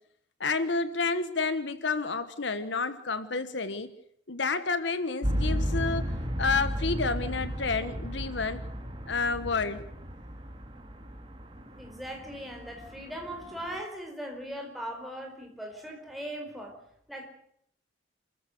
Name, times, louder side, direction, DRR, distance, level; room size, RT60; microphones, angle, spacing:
voice 1, 0.4-3.9 4.3-8.6 9.1-9.8, left 4 dB, 70° left, 12 dB, 1.3 m, -30 dB
sound 1, 5.2-13.8, equal, 25° right, 2.6 m, -34 dB
voice 2, 11.8-16.8 17.1-17.3, equal, ahead, 1 dB, 4.8 m, -39 dB
28.0 x 14.5 x 8.1 m, 0.70 s
head